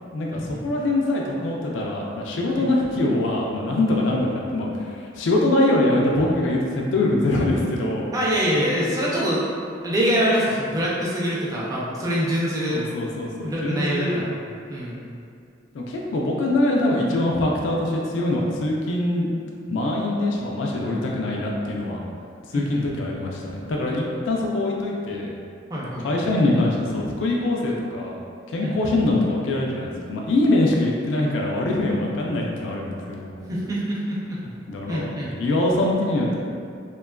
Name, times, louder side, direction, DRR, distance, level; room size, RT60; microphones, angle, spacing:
voice 1, 0.1-8.1 12.7-14.2 15.7-19.3 19.7-22.0 22.5-25.3 26.0-28.2 28.5-33.5 34.7-35.1 35.4-36.4, left 2 dB, 80° left, -1 dB, 0.3 m, -23 dB
voice 2, 8.1-9.4 9.8-12.8 13.4-14.3 14.7-15.0 22.5-22.8 25.7-26.1 28.6-28.8 33.5-34.4 34.9-35.3, equal, 20° right, -6 dB, 0.4 m, -24 dB
2.8 x 2.3 x 2.2 m, 2.4 s
head